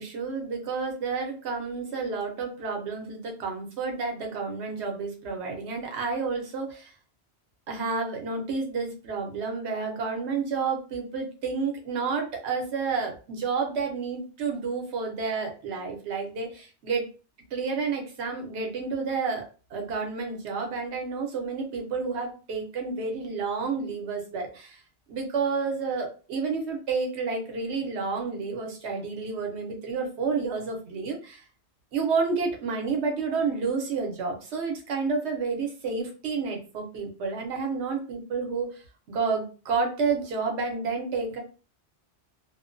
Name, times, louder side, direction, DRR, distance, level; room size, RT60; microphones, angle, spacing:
voice 1, 0.0-6.9 7.7-17.1 17.5-19.5 19.7-24.8 25.1-31.4 31.9-38.7 39.1-41.4, right 4 dB, 70° right, 2 dB, 1.0 m, -30 dB
2.4 x 2.2 x 2.5 m, 0.35 s
omnidirectional pair, 1.2 m